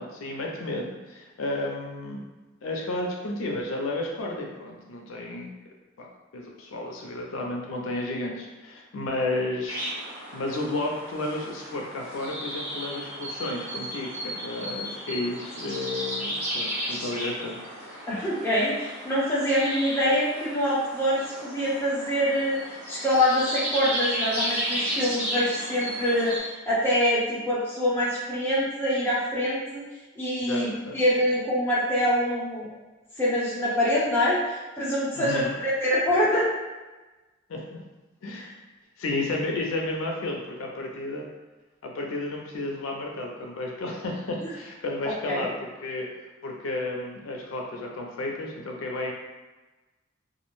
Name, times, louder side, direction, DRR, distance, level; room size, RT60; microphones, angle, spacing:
voice 1, 0.0-2.2 2.6-6.1 6.3-9.9 10.3-18.0 30.4-31.0 35.2-35.5 37.5-37.8 38.2-38.5 39.0-41.3 41.8-46.1 46.4-49.1, left 2 dB, 80° left, 0 dB, 0.4 m, -32 dB
sound 1, 9.7-26.4, equal, 80° right, 1.3 m, -34 dB
voice 2, 18.1-29.8 30.2-32.7 33.2-36.5 38.4-38.5 44.4-44.5 45.0-45.5, equal, 10° left, -8 dB, 0.6 m, -25 dB
2.4 x 2.0 x 3.0 m, 1.2 s
head